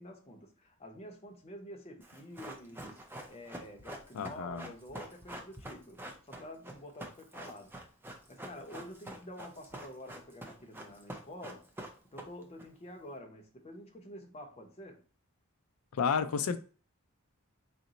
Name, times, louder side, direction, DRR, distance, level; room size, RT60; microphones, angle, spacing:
voice 1, 0.0-6.0 6.3-7.8 8.3-11.7 12.0-15.0, left 1 dB, 30° left, 0.6 m, -48 dB
Run, 2.0-12.6 12.9-13.0, right 1 dB, 10° right, 0.5 m, -46 dB
voice 2, 4.1-4.6 15.9-16.6, left 6 dB, 80° left, 0.4 m, -31 dB
4.0 x 2.1 x 3.8 m
head